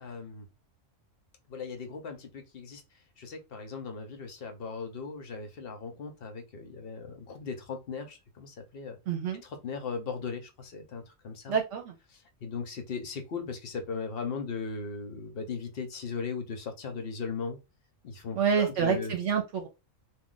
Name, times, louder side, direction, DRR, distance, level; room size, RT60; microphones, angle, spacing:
voice 1, 0.0-0.5 1.5-2.8 3.2-9.0 9.4-11.6 12.4-17.6 18.0-19.1, left 5 dB, 55° left, 0.9 m, -38 dB
voice 2, 9.1-9.4 11.5-11.9 18.4-19.7, right 7 dB, 70° right, 0.9 m, -27 dB
2.4 x 2.4 x 3.7 m
omnidirectional pair, 1.3 m